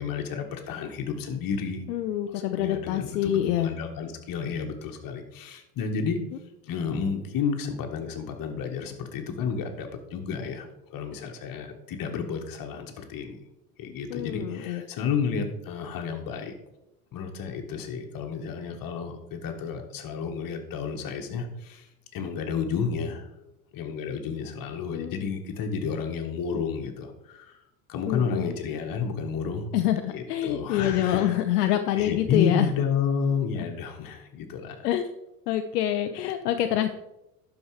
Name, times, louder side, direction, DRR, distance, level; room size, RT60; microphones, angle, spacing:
voice 1, 0.0-1.8 2.2-6.2 6.6-10.7 10.9-13.4 13.8-16.5 17.1-21.9 22.1-23.3 23.7-27.6 27.9-29.7 30.1-34.9, left 6 dB, 45° left, 4 dB, 1.8 m, -31 dB
voice 2, 1.9-3.7 14.1-14.8 24.9-25.3 28.1-28.5 29.7-32.7 34.8-35.1 35.5-36.9, left 11 dB, 75° left, 7 dB, 0.7 m, -26 dB
11.5 x 4.8 x 4.9 m, 0.91 s
hypercardioid pair, 80°, 48 cm